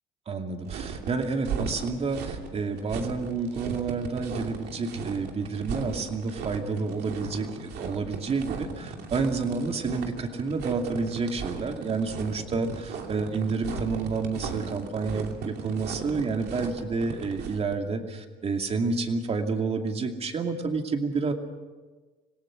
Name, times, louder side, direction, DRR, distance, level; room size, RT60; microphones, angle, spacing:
voice 1, 0.3-21.3, right 4 dB, 35° right, 4 dB, 2.5 m, -29 dB
sound 1, 0.7-17.7, right 6 dB, 75° right, 2.8 m, -37 dB
26.0 x 18.5 x 6.3 m, 1.3 s
cardioid pair, 110°, 17 cm